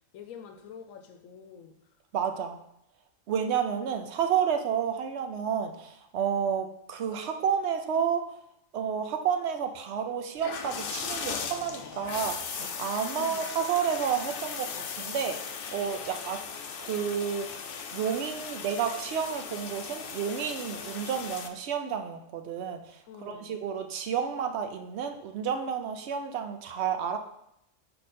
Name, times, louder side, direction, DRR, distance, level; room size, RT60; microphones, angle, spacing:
voice 1, 0.1-1.8 13.2-13.5 23.1-23.5, left 7 dB, 85° left, 5 dB, 1.0 m, -46 dB
voice 2, 2.1-2.6 3.3-8.2 8.7-16.4 16.8-17.5 17.9-27.2, right 7 dB, 65° right, 6 dB, 0.8 m, -30 dB
sound 1, 10.4-21.5, left 6 dB, 60° left, 0.6 m, -38 dB
5.0 x 4.5 x 4.2 m, 0.77 s
omnidirectional pair, 1.4 m